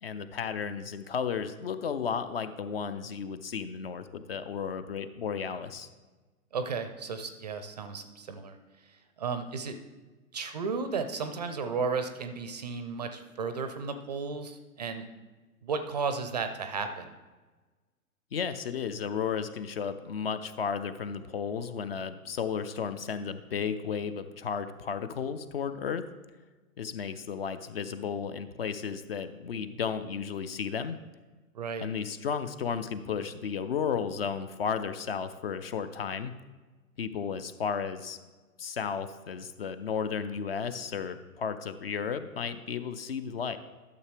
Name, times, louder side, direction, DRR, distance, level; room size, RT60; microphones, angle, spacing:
voice 1, 0.0-5.9 18.3-26.0 26.8-31.0 31.8-36.3 37.0-38.2 38.6-43.6, left 6 dB, 45° left, 11 dB, 0.5 m, -33 dB
voice 2, 6.5-8.6 8.9-9.7 10.3-15.0 15.6-17.1 31.5-31.9, right 5 dB, 30° right, 9 dB, 0.5 m, -34 dB
12.0 x 6.8 x 3.3 m, 1.3 s
figure-of-eight pair, 115°, 44 cm